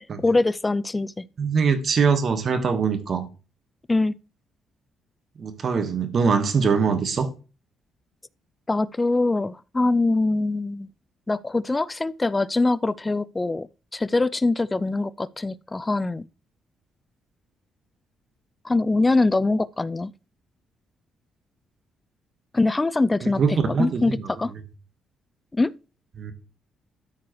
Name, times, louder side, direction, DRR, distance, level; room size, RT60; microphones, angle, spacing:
voice 1, 0.0-1.3 3.9-4.1 8.7-10.9 11.3-16.2 18.6-20.1 22.5-23.4 23.8-24.5 25.5-25.7, left 2 dB, 20° left, 0.3 m, -23 dB
voice 2, 1.4-3.3 5.4-7.3 23.2-24.4 26.2-26.3, right 5 dB, 50° right, 1.4 m, -23 dB
13.0 x 4.6 x 3.1 m
cardioid pair, 90°, 0 cm